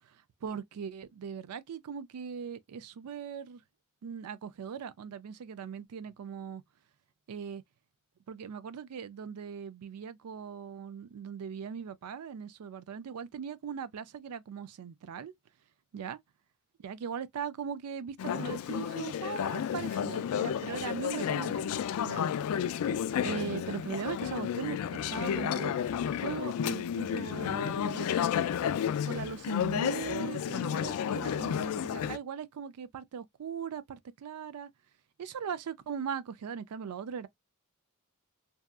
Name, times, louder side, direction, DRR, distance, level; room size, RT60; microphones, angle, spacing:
voice 1, 0.4-3.6 4.0-6.6 7.3-7.6 8.3-15.3 15.9-16.2 16.8-21.8 22.0-22.3 23.2-25.7 26.2-28.3 29.1-34.7 35.2-37.3, right 7 dB, 85° right, 0.4 m, -39 dB
Conversation / Chatter, 18.2-32.2, left 8 dB, 70° left, 0.3 m, -32 dB
2.7 x 2.3 x 2.3 m
head